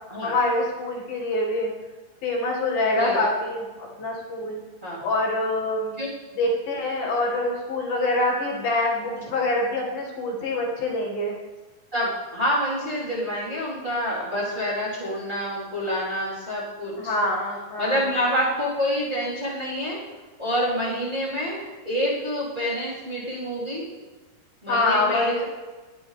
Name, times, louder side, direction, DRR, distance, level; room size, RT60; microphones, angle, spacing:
voice 1, 0.2-1.7 2.2-4.6 5.0-6.0 6.4-11.4 17.0-18.0 24.7-25.4, left 2 dB, 70° left, -1 dB, 3.7 m, -25 dB
voice 2, 3.0-3.3 4.8-5.0 6.0-6.1 11.9-17.2 17.8-20.0 20.4-23.8 24.6-25.4, equal, 10° right, -8 dB, 3.7 m, -27 dB
20.0 x 12.0 x 3.4 m, 1.3 s
omnidirectional pair, 4.4 m